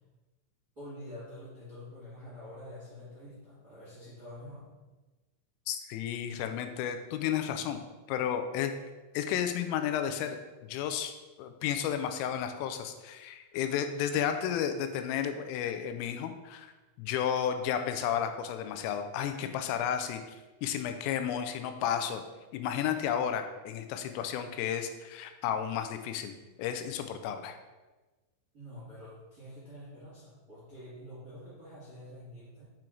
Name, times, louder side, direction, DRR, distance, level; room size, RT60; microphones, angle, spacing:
voice 1, 0.7-4.7 28.5-32.6, left 1 dB, 40° right, -9 dB, 1.4 m, -47 dB
voice 2, 5.7-7.8 8.1-8.7 9.1-10.4 10.6-16.7 17.0-20.4 20.6-22.2 22.5-27.6, left 9 dB, 85° left, 7 dB, 3.1 m, -32 dB
7.5 x 4.4 x 3.8 m, 1.2 s
omnidirectional pair, 5.8 m